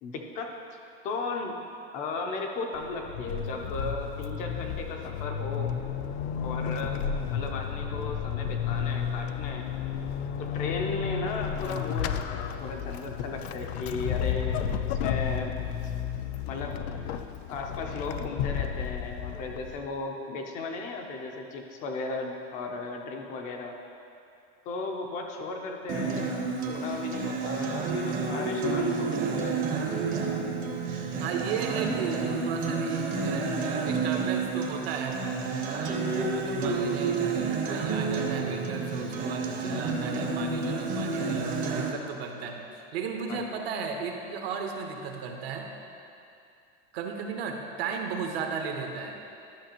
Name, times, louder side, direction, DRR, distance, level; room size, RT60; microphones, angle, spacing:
voice 1, 0.0-0.8 1.0-1.6 1.9-5.7 6.4-9.7 10.4-14.6 14.8-15.5 16.5-16.8 17.5-23.8 24.7-26.3 26.6-29.7 43.3-43.4, left 3 dB, 25° left, 2 dB, 0.4 m, -36 dB
Vehicle / Accelerating revving vroom / Squeak, 2.7-20.0, left 8 dB, 90° left, 0.5 m, -32 dB
Acoustic guitar, 25.9-41.9, right 4 dB, 25° right, 0.6 m, -30 dB
voice 2, 31.2-35.2 35.7-45.7 46.9-49.2, right 6 dB, 75° right, 3 dB, 1.0 m, -35 dB
11.5 x 5.9 x 2.8 m, 2.5 s
supercardioid pair, 170°, 31 cm